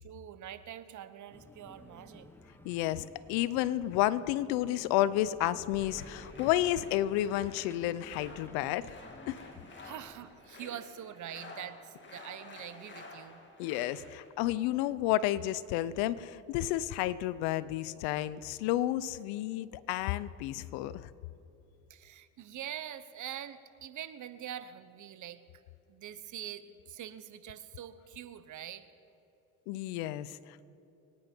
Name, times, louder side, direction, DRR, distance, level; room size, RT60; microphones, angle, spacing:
voice 1, 0.0-2.3 9.8-13.4 21.9-25.4 25.9-28.9, right 10 dB, 50° right, 13 dB, 0.9 m, -44 dB
sound 1, 1.3-10.3, left 1 dB, 5° left, 1.2 m, -54 dB
voice 2, 2.6-9.0 9.3-9.4 13.6-21.1 29.7-30.4, left 14 dB, 80° left, 17 dB, 0.6 m, -31 dB
sound 2, 5.8-14.3, left 2 dB, 30° left, 2.5 m, -51 dB
24.0 x 9.6 x 4.5 m, 2.9 s
supercardioid pair, 80°, 37 cm